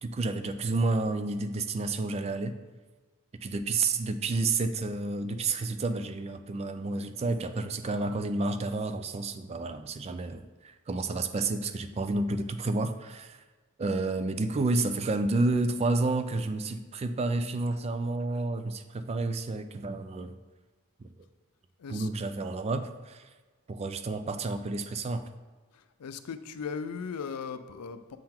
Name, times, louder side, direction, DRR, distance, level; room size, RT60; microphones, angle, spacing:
voice 1, 0.0-2.6 3.4-13.4 13.8-20.4 21.0-21.1 21.9-23.3 23.7-25.2, right 3 dB, 30° right, 9 dB, 0.3 m, -30 dB
voice 2, 25.7-28.2, left 6 dB, 90° left, 11 dB, 0.4 m, -38 dB
7.4 x 3.9 x 4.3 m, 1.3 s
head